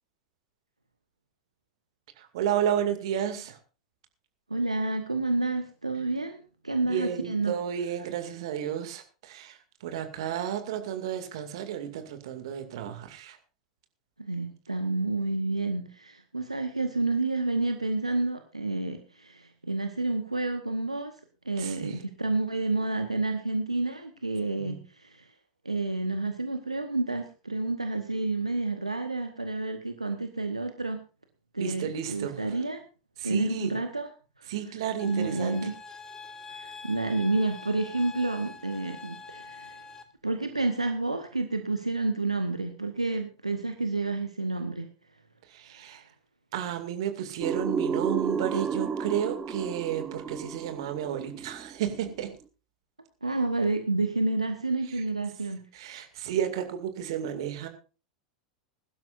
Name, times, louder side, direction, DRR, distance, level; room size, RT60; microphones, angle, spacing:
voice 1, 2.2-3.6 6.9-13.4 21.6-22.0 24.6-24.8 31.6-32.6 33.2-33.8 34.5-35.6 45.5-46.0 46.5-52.3 54.9-55.0 55.7-57.7, right 9 dB, 55° right, 7 dB, 2.3 m, -32 dB
voice 2, 4.5-7.5 14.2-21.1 21.4-25.3 25.6-31.0 31.5-32.8 33.2-34.1 34.4-34.5 35.0-35.7 36.5-39.8 40.2-44.9 53.2-55.6 55.9-56.0, right 2 dB, 85° right, 7 dB, 1.1 m, -29 dB
sound 1, 35.0-40.0, left 4 dB, 20° left, 1.8 m, -45 dB
sound 2, 47.4-52.1, right 6 dB, 20° right, 0.9 m, -32 dB
21.5 x 12.0 x 2.6 m, 0.33 s
figure-of-eight pair, 85°, 3 cm